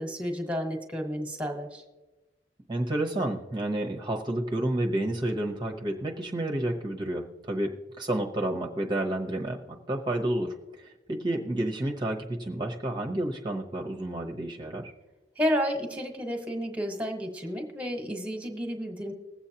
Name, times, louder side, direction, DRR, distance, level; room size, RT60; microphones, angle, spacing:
voice 1, 0.0-1.8 15.4-19.1, equal, 10° right, 3 dB, 1.3 m, -31 dB
voice 2, 2.7-14.9, right 1 dB, 25° right, 1 dB, 0.9 m, -30 dB
21.0 x 7.9 x 2.9 m, 1.1 s
head